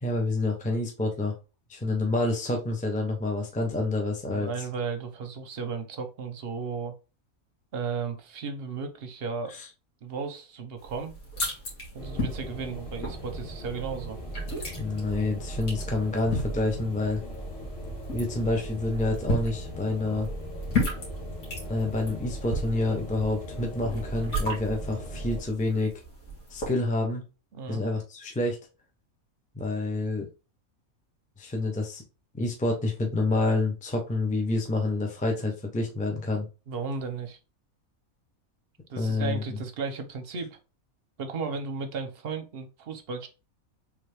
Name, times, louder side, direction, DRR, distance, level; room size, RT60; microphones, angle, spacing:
voice 1, 0.0-1.3 1.7-4.5 9.5-9.7 14.8-17.2 18.1-20.3 21.7-25.9 26.5-27.2 27.7-28.6 29.5-30.3 31.4-32.0 32.3-36.5 39.0-39.6, left 2 dB, 10° left, 2 dB, 0.6 m, -28 dB
voice 2, 4.3-6.9 7.7-9.5 10.0-11.1 11.9-14.2 27.5-27.8 36.7-37.4 38.9-40.6 41.2-43.3, right 5 dB, 50° right, 6 dB, 0.8 m, -34 dB
sound 1, 10.8-26.7, left 1 dB, 80° left, 2.0 m, -36 dB
sound 2, 12.0-25.4, right 1 dB, 45° left, 1.8 m, -38 dB
3.5 x 3.3 x 3.3 m, 0.30 s
omnidirectional pair, 1.5 m